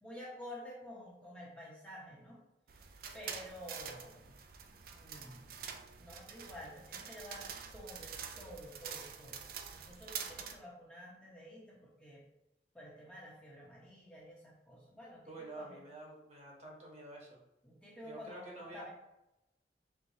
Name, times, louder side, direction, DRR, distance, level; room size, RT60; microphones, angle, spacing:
voice 1, 0.0-2.4 2.7-2.9 3.1-4.4 4.9-9.4 9.7-12.2 12.7-15.2 15.6-15.8 17.6-18.9, equal, 5° left, -5 dB, 0.9 m, -50 dB
sound 1, 2.7-10.6, right 7 dB, 55° right, 0.4 m, -46 dB
voice 2, 15.3-17.4 18.0-18.9, right 2 dB, 40° right, -2 dB, 1.1 m, -49 dB
4.6 x 3.7 x 2.7 m, 0.93 s
head